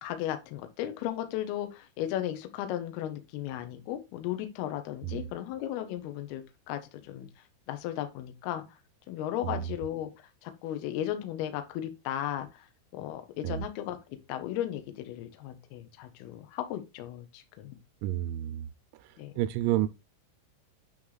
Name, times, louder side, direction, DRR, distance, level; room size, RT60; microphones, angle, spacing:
voice 1, 0.0-7.3 7.7-8.6 9.1-12.7 12.9-14.0 14.3-17.8 19.2-19.3, left 12 dB, 90° left, 2.2 m, -35 dB
voice 2, 9.4-9.8 13.4-13.6 18.0-18.7 18.9-19.9, right 13 dB, 85° right, 3.2 m, -31 dB
9.0 x 3.2 x 3.9 m
omnidirectional pair, 6.0 m